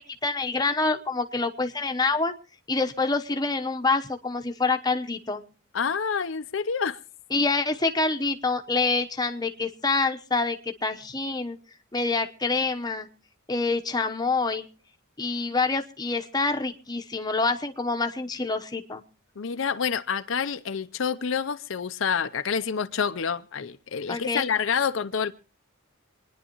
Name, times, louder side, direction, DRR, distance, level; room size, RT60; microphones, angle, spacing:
voice 1, 0.0-2.3 2.7-5.4 7.3-11.6 11.9-13.1 13.5-14.7 15.2-19.0 24.1-24.4, left 3 dB, 20° left, 0.9 m, -26 dB
voice 2, 5.7-7.0 19.4-25.3, left 6 dB, 65° left, 0.6 m, -28 dB
26.5 x 10.0 x 3.0 m
head